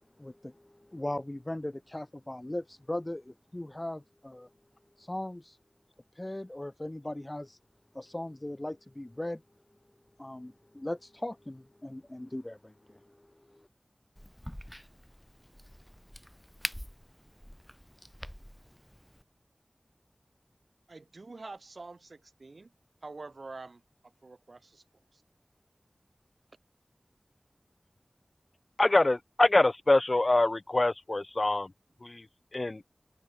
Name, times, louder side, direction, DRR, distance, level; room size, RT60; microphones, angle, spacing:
voice 1, 0.2-4.5 5.0-5.6 6.1-7.6 7.9-9.4 10.2-13.7, left 1 dB, 25° left, 3.8 m, -39 dB
Crack, 14.2-19.2, equal, 5° left, 4.6 m, -44 dB
voice 2, 20.9-22.7 23.0-24.8 25.1-25.2, right 3 dB, 80° right, 3.5 m, -46 dB
voice 3, 28.8-31.7 32.0-32.3 32.5-32.8, left 2 dB, 50° left, 0.8 m, -25 dB
wide cardioid pair, 50°, 0 cm